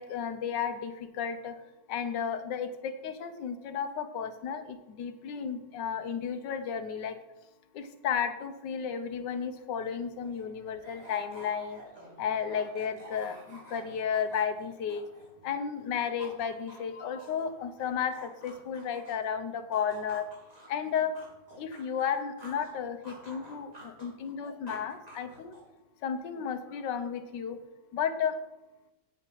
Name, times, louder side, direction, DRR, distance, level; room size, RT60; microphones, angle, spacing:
voice 1, 0.0-1.6 1.9-7.2 7.7-11.8 12.2-15.0 15.4-20.3 20.7-21.1 21.6-25.5 26.0-27.6 27.9-28.4, left 7 dB, 85° left, 9 dB, 1.5 m, -33 dB
sound 1, 9.6-9.7 10.0-15.5 15.8-19.3 19.7-22.7 23.0-25.8, right 1 dB, 20° right, 2.4 m, -51 dB
8.8 x 8.0 x 4.6 m, 0.97 s
omnidirectional pair, 1.8 m